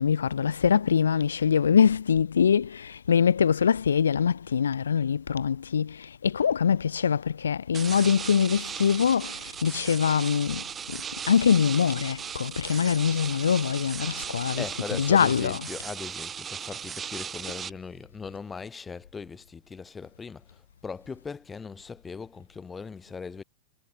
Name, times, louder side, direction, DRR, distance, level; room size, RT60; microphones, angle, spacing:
voice 1, 0.0-5.9 6.2-9.3 9.6-10.6 11.3-14.6 14.9-15.6, left 7 dB, 70° left, 0.7 m, -23 dB
sound 1, 7.7-17.7, right 7 dB, 20° right, 1.1 m, -37 dB
voice 2, 14.6-20.4 20.8-23.4, left 5 dB, 15° left, 5.7 m, -39 dB
figure-of-eight pair, 90°, 0 cm